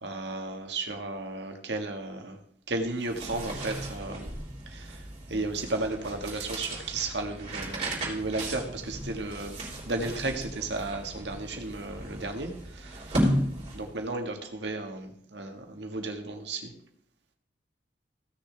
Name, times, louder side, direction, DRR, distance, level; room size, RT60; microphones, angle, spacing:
voice 1, 0.0-2.4 2.7-4.3 4.7-5.0 5.3-9.6 9.9-13.2 13.8-16.7, right 2 dB, 85° right, 4 dB, 1.6 m, -34 dB
sound 1, 2.9-14.1, equal, 40° right, 3.5 m, -35 dB
16.0 x 6.7 x 3.4 m, 0.68 s
head